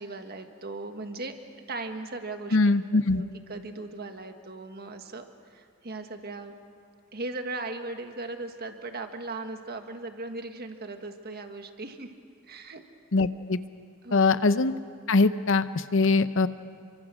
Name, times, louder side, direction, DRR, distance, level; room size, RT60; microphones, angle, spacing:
voice 1, 0.0-1.3 1.7-5.2 5.5-6.6 7.1-12.1 12.5-12.8 14.0-14.4, right 2 dB, 45° right, 6 dB, 1.6 m, -38 dB
voice 2, 2.5-3.2 13.1-13.6 14.1-14.7 15.1-16.5, left 3 dB, 65° left, 13 dB, 0.8 m, -22 dB
28.5 x 24.0 x 6.3 m, 2.2 s
head